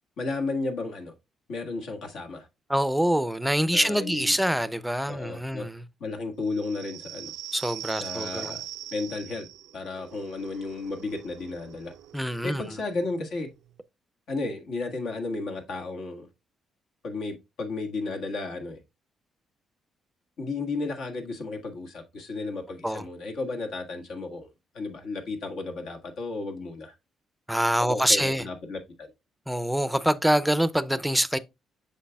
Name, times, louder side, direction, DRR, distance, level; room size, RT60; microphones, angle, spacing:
voice 1, 0.2-1.1 1.5-2.5 3.7-4.4 5.1-5.7 6.0-7.3 7.9-8.6 8.9-9.5 9.7-11.9 12.4-13.5 14.3-16.3 17.0-18.8 20.4-24.5 24.7-26.9 27.8-29.1, left 3 dB, 75° left, 1.6 m, -33 dB
voice 2, 2.7-5.8 7.5-8.5 12.1-12.6 22.8-23.0 27.5-28.4 29.5-31.4, equal, ahead, 0.5 m, -25 dB
sound 1, 6.5-13.7, right 12 dB, 85° right, 0.3 m, -42 dB
8.2 x 5.7 x 2.2 m
cardioid pair, 90°, 0 cm